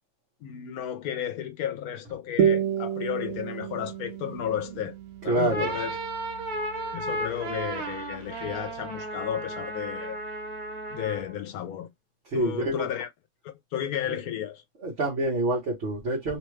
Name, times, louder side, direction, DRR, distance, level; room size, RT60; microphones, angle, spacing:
voice 1, 0.4-5.0 5.2-6.0 6.9-10.2 10.9-11.9 12.3-13.1 13.4-14.6, left 10 dB, 70° left, 1.1 m, -33 dB
sound 1, 2.4-7.4, right 8 dB, 85° right, 1.2 m, -30 dB
voice 2, 5.3-5.7 12.3-12.8 14.8-16.4, right 2 dB, 45° right, 1.2 m, -27 dB
sound 2, 5.4-11.4, right 2 dB, 65° right, 1.3 m, -34 dB
3.1 x 2.3 x 3.1 m
omnidirectional pair, 1.7 m